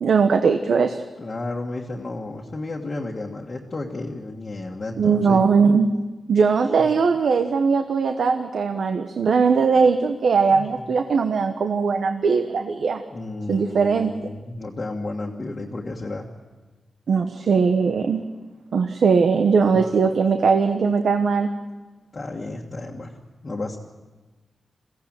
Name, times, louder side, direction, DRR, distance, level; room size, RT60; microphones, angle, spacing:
voice 1, 0.0-1.0 5.0-5.9 6.3-13.0 13.5-14.1 17.1-18.2 18.7-21.5, right 5 dB, 70° right, 7 dB, 1.1 m, -20 dB
voice 2, 1.2-5.5 9.2-9.3 10.5-10.8 13.1-16.3 22.1-23.1 23.4-23.8, left 2 dB, 30° left, -3 dB, 1.7 m, -32 dB
22.5 x 16.5 x 8.9 m, 1.2 s
wide cardioid pair, 160°, 0 cm